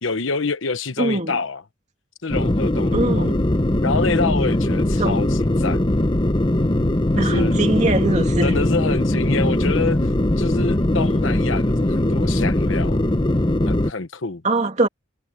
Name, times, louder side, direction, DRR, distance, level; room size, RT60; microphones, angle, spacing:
voice 1, 0.0-1.6 2.2-3.4 3.8-6.1 7.2-7.6 8.4-10.0 10.4-13.0 13.7-14.4, left 4 dB, 70° left, 1.1 m, -27 dB
voice 2, 1.0-1.4 2.9-3.4 5.0-5.3 7.2-8.5 14.4-14.9, right 2 dB, 35° right, 2.6 m, -22 dB
sound 1, 2.3-13.9, left 1 dB, 25° left, 0.8 m, -20 dB
head